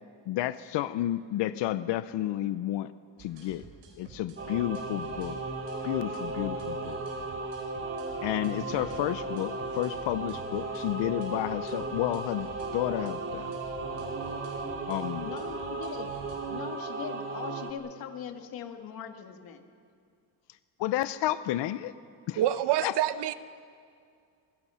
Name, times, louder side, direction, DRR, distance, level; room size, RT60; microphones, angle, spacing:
voice 1, 0.3-2.9 3.2-3.6 4.0-5.4 5.8-7.0 8.2-13.6 14.9-15.3 20.8-21.9 22.3-22.4 22.8-22.9, left 13 dB, 65° left, 13 dB, 0.7 m, -31 dB
sound 1, 3.2-16.4, right 5 dB, 80° right, 5.3 m, -50 dB
Singing / Musical instrument, 4.4-17.7, right 3 dB, 25° right, 2.1 m, -35 dB
voice 2, 15.2-19.6, left 7 dB, 50° left, 5 dB, 2.1 m, -41 dB
voice 3, 22.4-23.3, right 12 dB, 60° right, 13 dB, 0.9 m, -26 dB
26.5 x 24.5 x 5.7 m, 2.3 s
cardioid pair, 170°, 45 cm